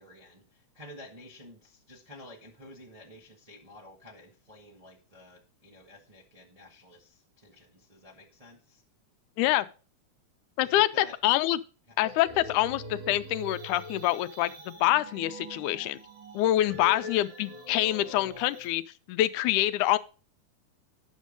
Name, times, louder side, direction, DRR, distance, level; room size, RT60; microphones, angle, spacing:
voice 1, 0.0-8.8 10.6-11.2 11.9-12.0 16.8-17.1, left 1 dB, 45° right, -3 dB, 0.4 m, -51 dB
voice 2, 10.6-11.6 12.0-16.0 16.3-18.8 19.1-20.0, left 15 dB, 85° left, 14 dB, 2.1 m, -26 dB
sound 1, 12.0-18.7, equal, 85° right, 3.6 m, -44 dB
9.2 x 6.4 x 5.1 m, 0.37 s
omnidirectional pair, 3.5 m